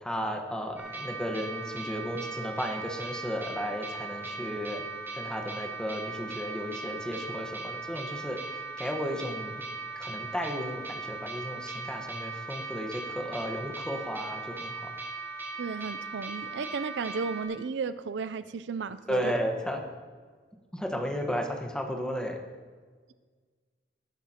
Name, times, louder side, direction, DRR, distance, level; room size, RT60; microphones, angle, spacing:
voice 1, 0.0-4.8 5.1-9.6 9.9-14.9 19.1-19.8 20.7-22.4, equal, 5° left, 2 dB, 1.3 m, -34 dB
sound 1, 0.8-17.4, right 3 dB, 15° right, 3.0 m, -39 dB
voice 2, 15.6-19.3, right 5 dB, 80° right, 13 dB, 0.4 m, -34 dB
18.5 x 10.5 x 2.9 m, 1.5 s
head